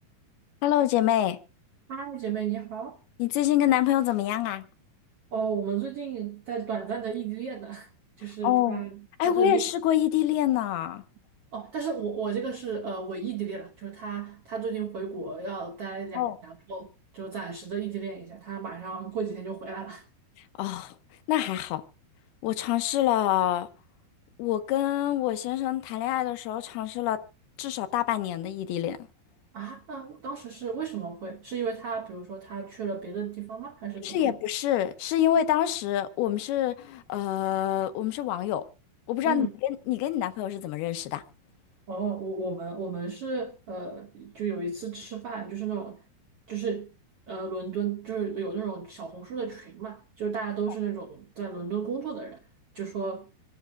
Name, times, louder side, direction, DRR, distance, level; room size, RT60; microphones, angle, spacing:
voice 1, 0.6-1.4 3.2-4.7 8.4-8.8 9.2-11.0 16.2-16.4 20.6-20.9 21.3-21.8 22.4-23.7 24.4-27.2 27.6-29.0 34.0-38.6 39.1-41.2, left 11 dB, 85° left, 3.0 m, -26 dB
voice 2, 1.9-3.0 5.3-7.9 8.2-9.6 11.5-20.1 29.5-34.4 39.2-39.5 41.9-46.0 46.5-46.9 47.3-52.4 52.7-53.3, right 6 dB, 70° right, 1.4 m, -34 dB
26.5 x 11.0 x 2.3 m
omnidirectional pair, 4.4 m